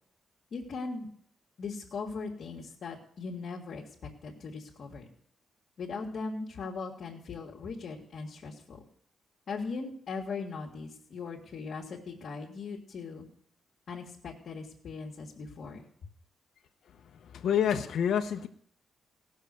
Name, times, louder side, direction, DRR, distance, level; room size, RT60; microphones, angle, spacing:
voice 1, 0.5-1.1 1.6-5.0 5.8-8.8 9.5-13.3 13.9-15.9, left 4 dB, 50° left, -4 dB, 1.9 m, -39 dB
voice 2, 17.4-18.5, left 8 dB, 70° left, 4 dB, 0.9 m, -27 dB
17.5 x 6.5 x 6.6 m, 0.63 s
wide cardioid pair, 160°, 0 cm